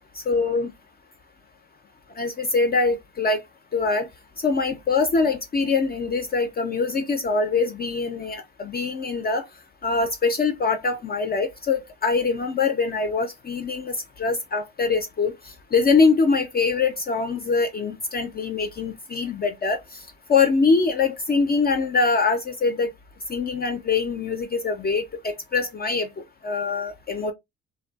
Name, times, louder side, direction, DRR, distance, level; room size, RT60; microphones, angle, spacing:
voice 1, 0.1-0.7 2.2-3.4 3.7-4.1 4.4-9.5 9.8-22.9 23.3-27.3, left 4 dB, 30° left, 0.4 m, -23 dB
2.5 x 2.2 x 2.2 m
cardioid pair, 90°, 30 cm